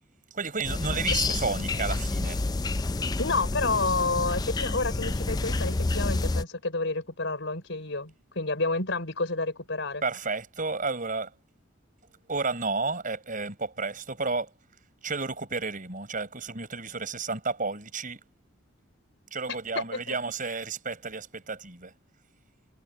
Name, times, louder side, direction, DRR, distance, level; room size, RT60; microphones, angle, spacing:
voice 1, 0.3-2.5 10.0-11.3 12.3-14.5 15.0-18.2 19.3-21.9, right 4 dB, 40° right, 5.4 m, -32 dB
sound 1, 0.6-6.4, left 3 dB, 20° left, 0.4 m, -29 dB
voice 2, 3.2-10.0 19.5-20.0, left 3 dB, 65° left, 4.7 m, -29 dB
head